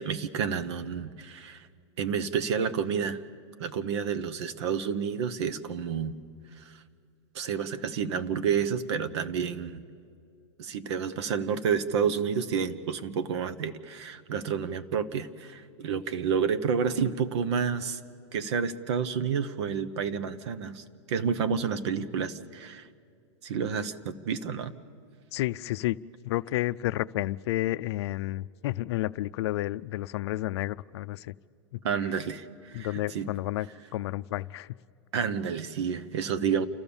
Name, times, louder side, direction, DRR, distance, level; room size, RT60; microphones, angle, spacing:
voice 1, 0.0-1.7 2.0-3.2 3.6-6.2 6.6-6.8 7.3-9.8 10.6-18.0 18.3-22.9 23.4-24.7 31.8-33.3 35.1-36.7, right 6 dB, 65° right, 12 dB, 1.1 m, -30 dB
voice 2, 25.3-26.0 26.2-31.3 31.7-31.8 32.7-33.7 33.9-34.7, left 16 dB, 65° left, 15 dB, 0.5 m, -31 dB
29.0 x 13.5 x 7.1 m, 2.3 s
supercardioid pair, 150°, 15 cm